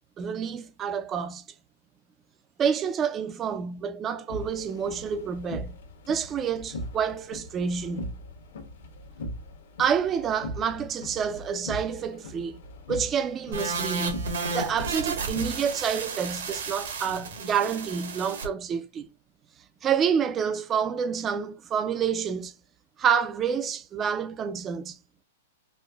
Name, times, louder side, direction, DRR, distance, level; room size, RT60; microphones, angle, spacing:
voice 1, 0.2-1.4 2.6-5.8 6.1-8.1 9.8-12.6 12.9-19.1 19.8-22.5 23.0-25.0, right 7 dB, 20° right, 0.3 m, -28 dB
sound 1, 4.3-15.7, left 1 dB, 75° left, 1.1 m, -40 dB
sound 2, 13.5-18.5, right 4 dB, 80° right, 1.3 m, -33 dB
4.2 x 2.5 x 2.3 m
hypercardioid pair, 150°, 0 cm